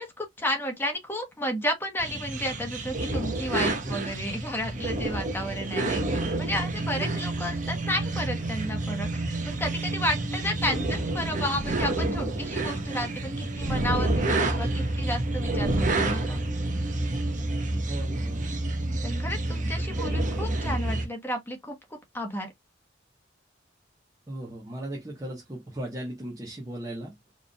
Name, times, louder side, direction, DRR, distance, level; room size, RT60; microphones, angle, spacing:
voice 1, 0.0-16.4 19.0-21.8 22.1-22.5, left 1 dB, 10° left, 1.1 m, -32 dB
sound 1, 2.0-21.1, right 2 dB, 40° right, 1.0 m, -29 dB
voice 2, 5.8-6.2 11.1-11.4 17.9-18.6 24.3-27.1, right 1 dB, 20° right, 1.2 m, -37 dB
4.9 x 3.3 x 2.2 m
head